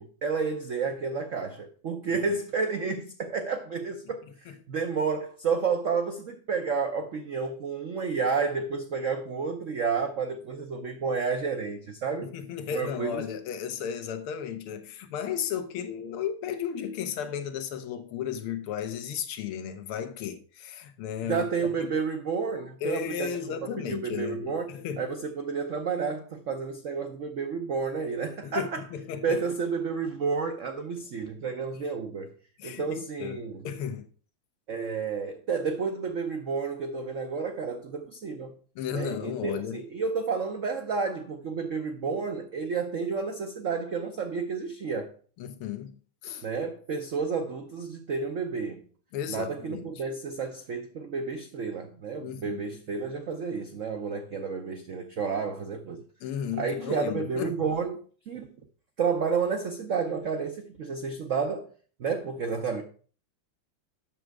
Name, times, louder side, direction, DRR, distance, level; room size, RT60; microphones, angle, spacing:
voice 1, 0.0-12.3 12.7-13.2 21.2-23.3 23.6-24.7 25.0-28.8 29.2-32.3 32.6-33.6 34.7-38.6 38.9-45.1 46.4-48.8 49.3-56.0 56.6-58.0 58.3-58.5 59.0-61.7 62.0-62.8, right 5 dB, 85° right, 0.6 m, -31 dB
voice 2, 12.2-21.5 21.8-21.9 22.8-25.1 28.4-29.4 32.6-34.1 38.8-39.8 45.4-46.5 49.1-49.9 52.2-52.6 56.2-57.5, left 8 dB, 85° left, 1.8 m, -34 dB
7.6 x 6.3 x 4.6 m
omnidirectional pair, 2.3 m